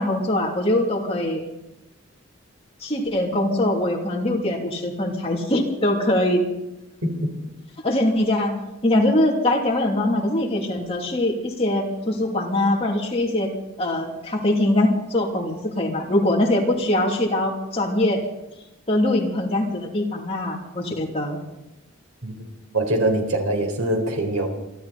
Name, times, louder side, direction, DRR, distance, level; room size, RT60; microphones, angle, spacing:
voice 1, 0.0-1.4 2.8-6.4 7.8-8.5 8.8-13.5 13.8-18.2 18.9-21.4, left 1 dB, 30° left, -1 dB, 2.9 m, -22 dB
voice 2, 22.2-24.5, right 1 dB, 90° right, 4 dB, 4.1 m, -23 dB
28.0 x 12.0 x 4.2 m, 0.92 s
head